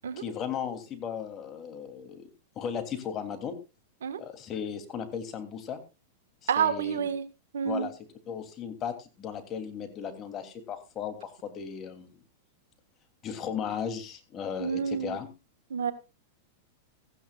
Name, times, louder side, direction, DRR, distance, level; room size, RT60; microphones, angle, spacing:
voice 1, 0.2-2.2 2.5-3.6 4.2-5.8 6.4-7.0 7.6-8.0 8.3-12.2 13.2-15.3, left 7 dB, 35° left, 7 dB, 3.0 m, -36 dB
voice 2, 6.5-7.2 7.5-7.9 14.6-15.2 15.7-15.9, right 7 dB, 80° right, 10 dB, 1.5 m, -28 dB
16.5 x 15.0 x 2.4 m, 0.28 s
hypercardioid pair, 110°, 0 cm